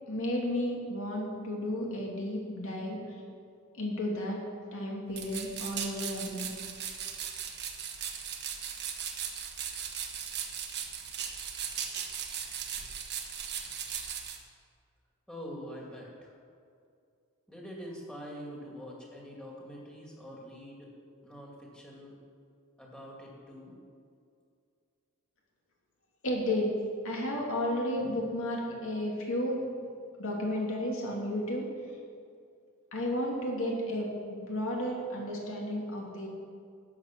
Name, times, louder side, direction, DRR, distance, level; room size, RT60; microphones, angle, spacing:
voice 1, 0.1-3.0 3.7-4.4 4.7-6.5 26.2-26.7 27.0-29.6 30.2-31.7 32.9-36.3, left 1 dB, 65° left, -2 dB, 2.6 m, -32 dB
sound 1, 5.1-14.4, right 8 dB, 50° right, 1.2 m, -38 dB
voice 2, 15.3-16.3 17.5-20.9 21.2-22.2 22.8-23.7, equal, 5° left, -3 dB, 2.4 m, -45 dB
12.0 x 8.2 x 6.1 m, 2.4 s
head